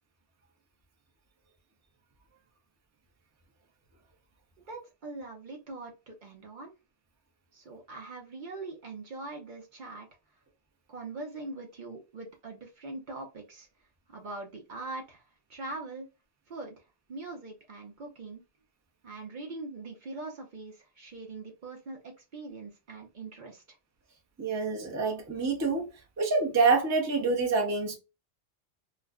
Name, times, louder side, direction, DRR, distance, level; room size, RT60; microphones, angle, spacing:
voice 1, 4.6-6.7 7.5-10.1 10.9-13.7 14.1-15.2 15.5-16.1 16.5-18.4 19.0-23.8, right 3 dB, 50° right, 0.7 m, -42 dB
voice 2, 24.4-25.9 26.2-27.9, right 4 dB, 20° right, 0.5 m, -26 dB
2.4 x 2.1 x 3.4 m
omnidirectional pair, 1.1 m